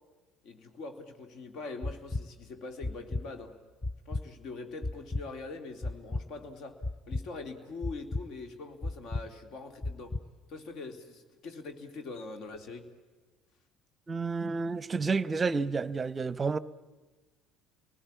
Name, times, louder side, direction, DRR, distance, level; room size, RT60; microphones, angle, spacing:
voice 1, 0.4-3.6 4.1-10.2 10.5-12.9, left 3 dB, 55° left, 2.7 m, -43 dB
sound 1, 1.8-2.2 2.8-3.2 3.8-4.2 4.8-5.2 5.8-6.2 6.8-7.2 7.8-8.2 8.8-9.2 9.8-10.2, left 2 dB, 20° left, 0.8 m, -33 dB
voice 2, 14.1-16.6, right 4 dB, 30° right, 0.8 m, -30 dB
30.0 x 19.0 x 8.6 m
figure-of-eight pair, 55°, 0 cm